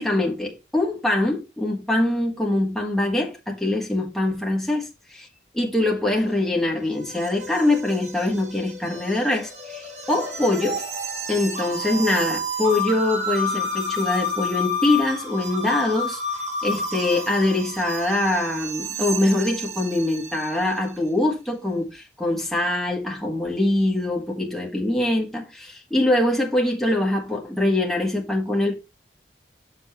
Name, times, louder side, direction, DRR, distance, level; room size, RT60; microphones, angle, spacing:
voice 1, 0.0-5.3 5.5-10.8 11.3-16.2 16.6-28.7, left 1 dB, ahead, 1.7 m, -23 dB
sound 1, 6.3-20.9, left 1 dB, 40° right, 2.0 m, -30 dB
6.7 x 6.0 x 4.3 m
head